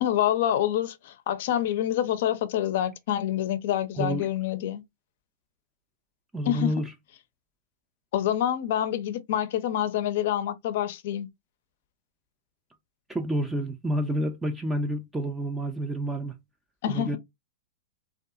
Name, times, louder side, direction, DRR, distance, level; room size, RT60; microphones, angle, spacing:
voice 1, 0.0-4.8 6.5-6.7 8.1-11.3 16.8-17.2, left 11 dB, 60° left, 0.5 m, -27 dB
voice 2, 4.0-4.3 6.3-6.9 13.1-16.3 16.9-17.2, right 1 dB, 10° right, 0.4 m, -29 dB
2.6 x 2.3 x 2.4 m
hypercardioid pair, 115°, 0 cm